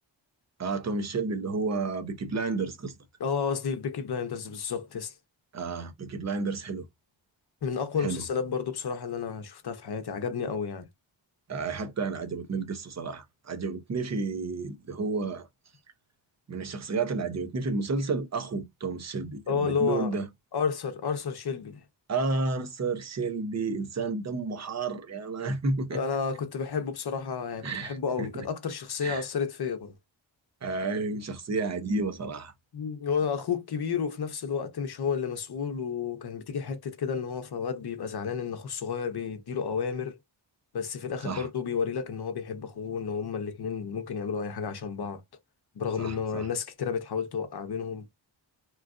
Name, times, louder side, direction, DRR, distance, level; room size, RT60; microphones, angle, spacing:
voice 1, 0.6-3.0 5.5-6.9 8.0-8.2 11.5-15.5 16.5-20.3 22.1-26.0 27.6-28.4 29.0-29.3 30.6-32.5 41.2-41.5 46.0-46.5, right 3 dB, 35° right, 0.6 m, -31 dB
voice 2, 3.2-5.1 7.6-10.9 19.5-20.1 20.5-21.8 25.9-29.9 32.7-40.2 40.7-45.2 45.8-48.1, left 6 dB, 55° left, 0.7 m, -31 dB
3.0 x 2.4 x 2.4 m
wide cardioid pair, 145°, 47 cm